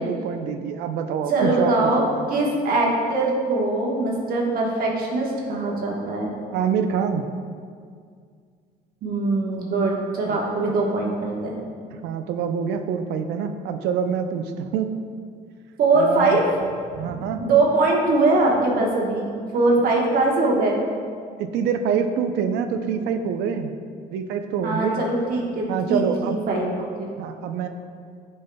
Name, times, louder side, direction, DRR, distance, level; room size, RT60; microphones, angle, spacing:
voice 1, 0.0-2.3 6.5-7.3 10.2-10.6 12.0-14.9 15.9-16.4 17.0-17.4 21.4-23.7 24.1-25.0 25.7-26.4 27.2-27.7, right 7 dB, 85° right, 7 dB, 0.5 m, -26 dB
voice 2, 1.3-2.0 2.3-6.3 9.0-11.6 15.8-16.5 17.4-20.8 24.6-27.1, right 2 dB, 60° right, -2 dB, 1.1 m, -22 dB
10.5 x 5.5 x 2.2 m, 2.1 s
cardioid pair, 110°, 17 cm